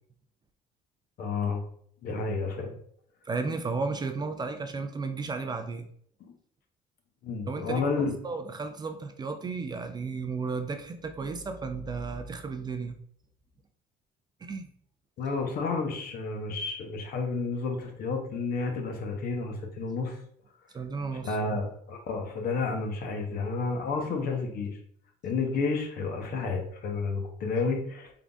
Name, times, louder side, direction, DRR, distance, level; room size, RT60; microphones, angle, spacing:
voice 1, 1.2-1.6 2.0-2.7 6.2-6.3 7.2-8.1 15.2-20.2 21.1-24.8 25.2-28.1, left 4 dB, 60° left, 3 dB, 0.9 m, -31 dB
voice 2, 3.2-5.9 7.5-13.0 14.4-14.6 20.7-21.6, right 4 dB, 25° right, 7 dB, 0.4 m, -34 dB
3.7 x 3.5 x 2.3 m, 0.64 s
cardioid pair, 110°, 17 cm